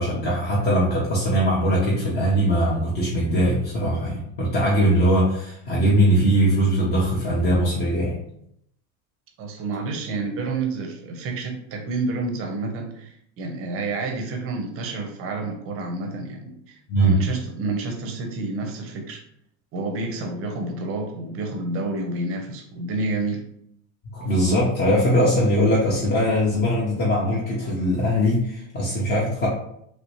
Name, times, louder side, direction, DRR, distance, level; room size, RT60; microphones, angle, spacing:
voice 1, 0.0-8.2 16.9-17.2 24.1-29.5, equal, 25° left, -5 dB, 0.7 m, -21 dB
voice 2, 9.4-19.2 19.7-23.4, right 3 dB, 30° right, 3 dB, 0.6 m, -29 dB
3.1 x 2.8 x 2.9 m, 0.71 s
supercardioid pair, 145°, 43 cm